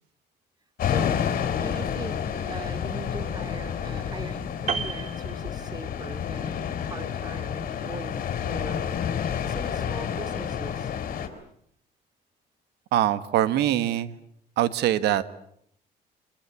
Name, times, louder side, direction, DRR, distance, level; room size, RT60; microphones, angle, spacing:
sound 1, 0.8-11.3, left 8 dB, 55° left, 4.4 m, -29 dB
voice 1, 0.8-1.2 1.6-8.9 9.4-10.9, right 3 dB, 25° right, 10 dB, 2.7 m, -40 dB
Piano, 4.7-6.1 6.4-6.6, right 6 dB, 45° right, 1.8 m, -33 dB
voice 2, 12.9-14.1 14.6-15.2, right 12 dB, 80° right, 14 dB, 1.5 m, -23 dB
25.5 x 22.5 x 8.3 m, 0.70 s
cardioid pair, 110°, 17 cm